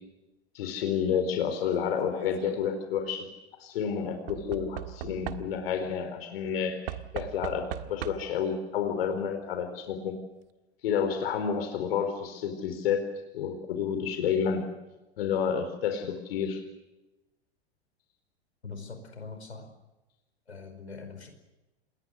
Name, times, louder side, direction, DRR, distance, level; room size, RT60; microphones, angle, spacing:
voice 1, 0.5-3.3 3.6-10.2 10.8-13.1 13.3-14.7 15.2-16.6, left 7 dB, 65° left, 7 dB, 4.4 m, -30 dB
Knock / Wood, 2.1-2.6 4.3-5.8 6.9-8.5 9.5-9.6 9.8-9.9, right 13 dB, 60° right, 1.7 m, -39 dB
voice 2, 18.6-19.7 20.5-21.3, left 4 dB, 90° left, 6 dB, 5.0 m, -42 dB
28.0 x 21.0 x 6.5 m, 1.0 s
hypercardioid pair, 100°, 32 cm